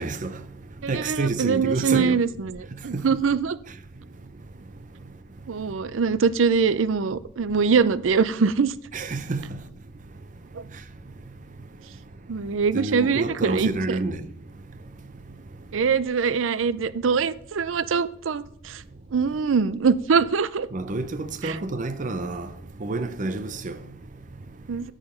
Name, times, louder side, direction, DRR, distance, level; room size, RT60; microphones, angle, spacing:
voice 1, 0.0-2.2 2.7-3.1 4.0-5.7 8.9-9.7 10.0-11.9 12.2-15.8 20.7-24.9, right 2 dB, 40° right, 0.6 m, -32 dB
voice 2, 0.8-3.6 5.5-8.7 10.5-10.6 12.3-14.0 15.7-18.8 19.1-20.7 21.4-21.6 24.7-24.9, right 5 dB, 85° right, 0.5 m, -23 dB
13.5 x 5.0 x 5.6 m
head